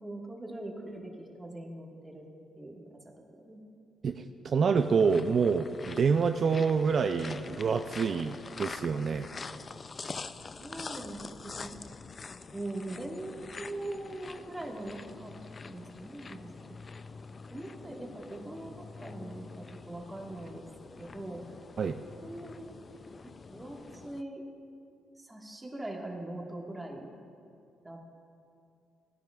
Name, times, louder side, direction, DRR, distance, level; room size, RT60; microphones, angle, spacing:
voice 1, 0.0-2.3 2.6-3.1 3.4-3.6 10.6-11.2 11.4-11.8 12.5-15.3 15.6-16.8 17.5-20.7 21.0-21.4 22.2-22.7 23.2-24.4 25.2-27.1 27.8-28.0, right 1 dB, 15° right, 0 dB, 1.6 m, -41 dB
voice 2, 4.0-9.3 21.8-22.0, right 5 dB, 50° right, 6 dB, 0.4 m, -27 dB
sound 1, 4.8-24.2, left 4 dB, 35° left, 0.3 m, -45 dB
16.5 x 10.0 x 2.4 m, 2.5 s
cardioid pair, 90°, 0 cm